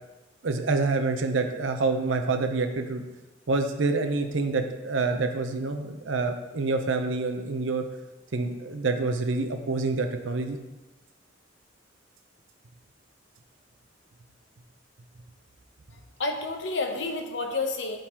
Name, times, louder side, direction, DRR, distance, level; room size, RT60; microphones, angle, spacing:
voice 1, 0.4-3.0 3.5-7.8 8.3-10.6, right 3 dB, 75° right, 6 dB, 0.6 m, -27 dB
voice 2, 15.9-18.0, left 3 dB, 60° left, 4 dB, 0.8 m, -30 dB
11.0 x 3.9 x 2.9 m, 1.1 s
head